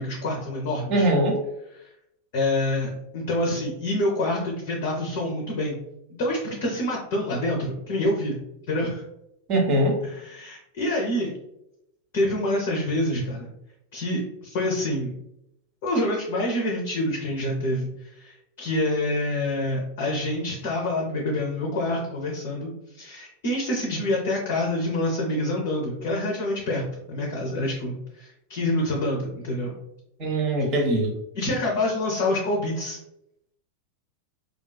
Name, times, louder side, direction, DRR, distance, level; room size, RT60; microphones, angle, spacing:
voice 1, 0.0-1.1 2.3-5.7 6.2-9.0 10.0-11.3 12.1-13.5 13.9-15.1 15.8-22.7 23.0-29.7 30.6-30.7 31.3-33.0, left 1 dB, 50° left, -2 dB, 0.5 m, -27 dB
voice 2, 0.9-1.4 9.5-9.9 30.2-31.2, right 1 dB, 35° right, 0 dB, 0.6 m, -21 dB
2.5 x 2.2 x 2.2 m, 0.82 s
figure-of-eight pair, 90°, 0 cm